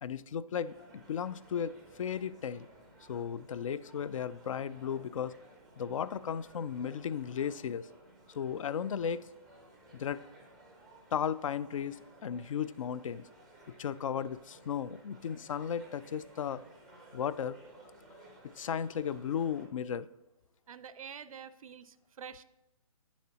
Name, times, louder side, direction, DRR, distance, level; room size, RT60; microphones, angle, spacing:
voice 1, 0.0-2.7 3.1-5.3 5.8-7.9 8.3-9.3 9.9-10.2 11.1-12.0 12.2-13.3 13.8-16.6 17.1-17.6 18.6-20.1, left 8 dB, 65° left, 18 dB, 0.4 m, -35 dB
sound 1, 0.6-19.7, right 1 dB, ahead, 0.5 m, -57 dB
voice 2, 20.7-22.4, right 7 dB, 70° right, 15 dB, 0.4 m, -47 dB
9.6 x 7.1 x 2.9 m, 0.97 s
hypercardioid pair, 165°, 18 cm